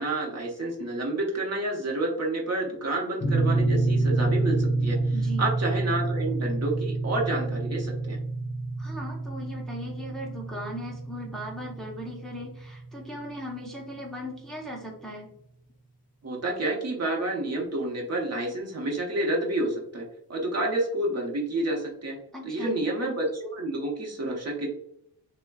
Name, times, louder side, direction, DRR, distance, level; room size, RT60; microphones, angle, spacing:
voice 1, 0.0-8.2 16.2-22.2 22.4-24.7, right 2 dB, 40° right, -1 dB, 0.9 m, -29 dB
sound 1, 3.2-13.4, right 2 dB, 20° left, 0.3 m, -28 dB
voice 2, 5.1-5.5 8.8-15.3 22.3-22.8, equal, ahead, -2 dB, 0.7 m, -38 dB
5.9 x 2.2 x 2.3 m, 0.74 s
wide cardioid pair, 130°, 41 cm